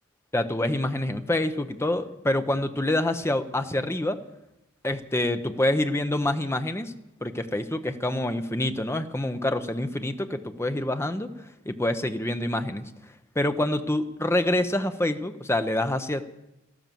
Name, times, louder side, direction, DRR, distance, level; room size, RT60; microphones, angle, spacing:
voice 1, 0.3-4.2 4.8-6.9 7.2-11.3 11.7-12.9 13.4-16.2, left 1 dB, 10° left, 9 dB, 0.8 m, -26 dB
13.5 x 12.5 x 7.6 m, 0.92 s
head